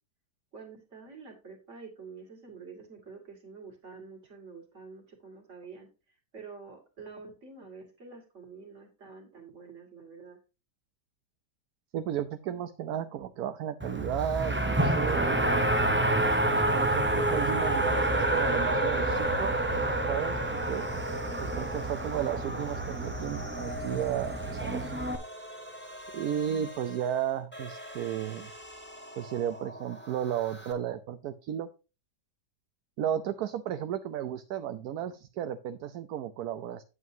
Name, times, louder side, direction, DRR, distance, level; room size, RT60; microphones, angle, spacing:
voice 1, 0.5-5.9 6.3-10.4 21.2-21.8, right 4 dB, 45° right, 3 dB, 2.5 m, -48 dB
voice 2, 11.9-15.7 16.5-19.5 20.1-20.9 21.4-25.1 26.1-28.5 29.2-31.7 33.0-36.8, right 10 dB, 70° right, 10 dB, 1.1 m, -34 dB
Race car auto racing, 13.8-25.1, right 1 dB, 15° right, 0.5 m, -28 dB
sound 1, 14.2-30.7, left 1 dB, 5° left, 1.7 m, -46 dB
9.3 x 8.2 x 2.7 m, 0.31 s
omnidirectional pair, 1.8 m